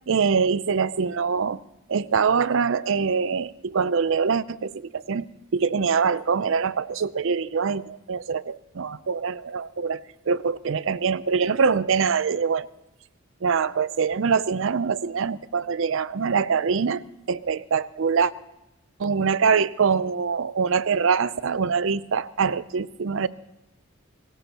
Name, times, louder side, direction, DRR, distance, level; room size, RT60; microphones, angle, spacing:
voice 1, 0.1-1.6 1.9-5.3 5.5-10.0 10.3-12.7 13.4-18.3 19.0-23.3, right 5 dB, 65° right, 17 dB, 0.5 m, -24 dB
24.0 x 18.5 x 2.9 m, 0.93 s
head